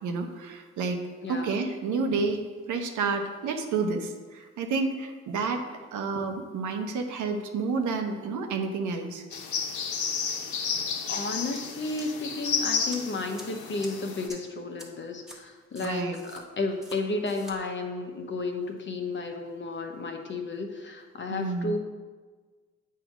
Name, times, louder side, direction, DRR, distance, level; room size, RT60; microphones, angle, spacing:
voice 1, 0.0-1.0 1.3-2.4 2.7-5.6 5.9-9.2 15.8-16.2 21.3-21.8, right 4 dB, 80° right, 5 dB, 0.9 m, -30 dB
voice 2, 1.2-1.5 11.1-21.8, left 3 dB, 40° left, 4 dB, 0.9 m, -33 dB
sound 1, 9.3-14.3, left 5 dB, 70° left, 0.9 m, -32 dB
sound 2, 11.5-11.6 12.0-12.5 12.9-13.0 13.4-13.5 13.8-13.9 14.3-14.4 14.8-14.9 15.3-15.4 15.8-16.4 16.8-17.0 17.3-17.6, equal, ahead, 1.3 m, -45 dB
8.2 x 2.8 x 5.9 m, 1.4 s
cardioid pair, 90°, 30 cm